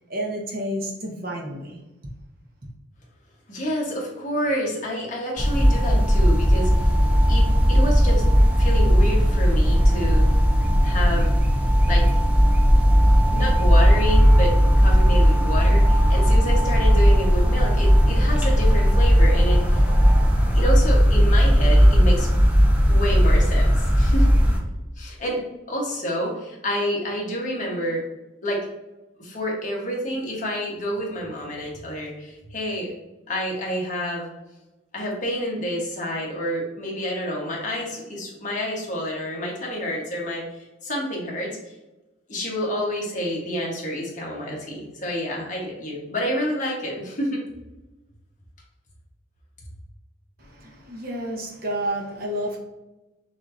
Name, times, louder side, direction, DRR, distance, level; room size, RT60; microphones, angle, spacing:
voice 1, 0.1-1.8 50.4-52.6, right 1 dB, 50° right, 0 dB, 1.0 m, -30 dB
voice 2, 3.5-6.9 7.3-8.2 8.6-10.3 10.8-11.3 11.9-12.0 13.3-19.9 20.5-22.3 22.9-24.3 25.0-25.4 25.7-28.0 28.4-28.6 29.2-32.9 33.3-34.3 34.9-41.7 42.3-47.4, equal, 40° left, -3 dB, 1.3 m, -28 dB
sound 1, 5.4-24.6, equal, 10° right, 0.7 m, -17 dB
6.2 x 2.8 x 2.6 m, 1.1 s
head